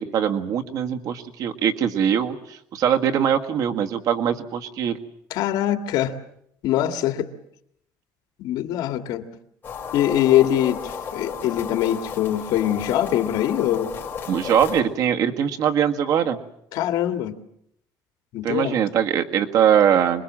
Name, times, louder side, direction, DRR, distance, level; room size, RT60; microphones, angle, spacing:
voice 1, 0.0-5.0 14.3-16.4 18.4-20.2, right 8 dB, 55° right, 5 dB, 1.8 m, -22 dB
voice 2, 5.3-6.1 6.6-7.3 8.4-9.3 9.9-10.8 11.1-13.9 16.7-17.4 18.3-18.8, left 12 dB, 70° left, 7 dB, 2.0 m, -22 dB
sound 1, 9.6-14.8, left 6 dB, 30° left, 4.6 m, -33 dB
26.5 x 21.5 x 7.5 m, 0.72 s
cardioid pair, 145°, 7 cm